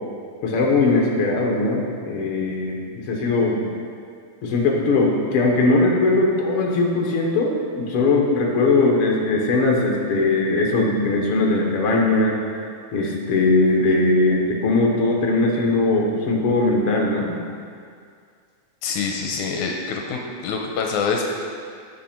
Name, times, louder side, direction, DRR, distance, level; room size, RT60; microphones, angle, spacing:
voice 1, 0.4-3.7 4.4-12.4 12.9-17.4, left 2 dB, 55° left, -1 dB, 2.0 m, -20 dB
voice 2, 18.8-21.2, left 5 dB, 80° left, 1 dB, 2.2 m, -25 dB
14.0 x 6.1 x 4.5 m, 2.2 s
omnidirectional pair, 3.5 m